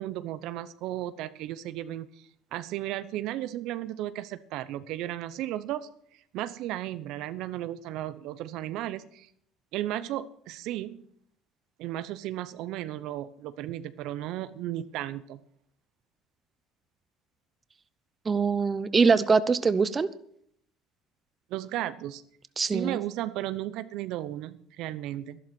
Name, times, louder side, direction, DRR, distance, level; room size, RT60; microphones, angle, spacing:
voice 1, 0.0-2.1 2.5-5.9 6.3-9.3 9.7-11.0 11.8-15.4 21.5-22.2 22.6-25.4, right 13 dB, 70° right, 14 dB, 0.7 m, -34 dB
voice 2, 18.3-20.1 22.6-23.0, right 5 dB, 25° right, 14 dB, 0.8 m, -23 dB
12.0 x 11.0 x 6.1 m, 0.66 s
supercardioid pair, 95°, 0 cm